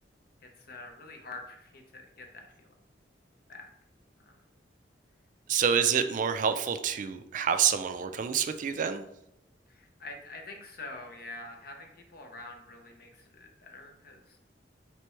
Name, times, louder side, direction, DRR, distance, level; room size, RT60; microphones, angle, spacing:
voice 1, 0.4-2.5 3.5-3.7 9.7-14.4, left 2 dB, 55° left, 3 dB, 0.8 m, -46 dB
voice 2, 5.5-9.0, right 7 dB, 45° right, 9 dB, 0.3 m, -27 dB
3.4 x 3.1 x 4.5 m, 0.84 s
head